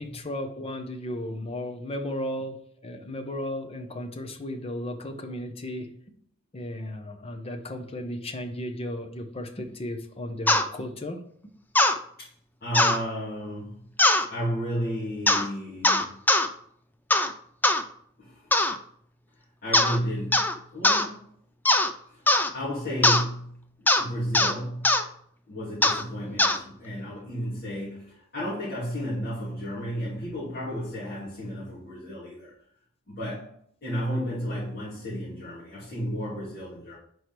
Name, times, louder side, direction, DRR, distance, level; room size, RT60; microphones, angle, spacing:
voice 1, 0.0-2.6 2.8-5.9 6.5-11.2, left 1 dB, 30° left, 6 dB, 0.8 m, -34 dB
sound 1, 10.5-10.7 11.8-12.0 12.7-13.0 14.0-14.3 15.3-15.5 15.8-16.5 17.1-17.3 17.6-17.8 18.5-18.8 19.7-20.0 20.3-20.5 20.8-21.1 21.7-21.9 22.3-22.5 23.0-23.2 23.9-24.0 24.3-24.5 24.8-25.0 25.8-26.0 26.4-26.6, left 2 dB, 10° left, 0.4 m, -20 dB
voice 2, 12.6-13.8 14.3-16.2 18.2-18.5 19.6-21.2 22.1-22.2 22.5-25.0 25.5-32.5 33.1-33.5 33.8-37.0, equal, 45° left, -11 dB, 2.7 m, -33 dB
4.9 x 4.7 x 6.0 m, 0.64 s
head